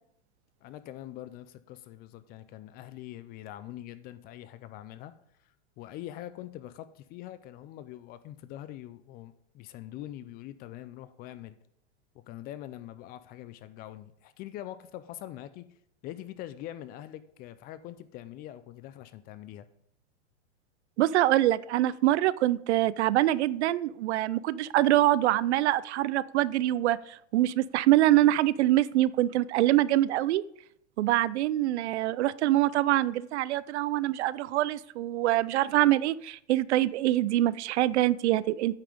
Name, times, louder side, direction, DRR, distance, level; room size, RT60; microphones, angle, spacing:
voice 1, 0.6-5.1 5.4-11.6 12.1-15.6 16.0-19.7, left 13 dB, 25° left, 14 dB, 0.4 m, -43 dB
voice 2, 21.0-30.4 31.0-38.7, right 14 dB, 65° right, 20 dB, 0.5 m, -25 dB
8.9 x 5.7 x 5.1 m, 0.72 s
hypercardioid pair, 120°, 36 cm